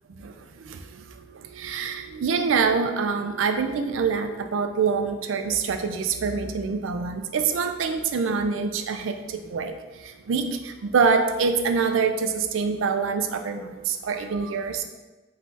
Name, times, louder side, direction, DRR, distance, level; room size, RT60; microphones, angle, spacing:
voice 1, 0.2-14.8, right 5 dB, 90° right, 7 dB, 0.4 m, -26 dB
3.4 x 3.1 x 3.9 m, 1.2 s
head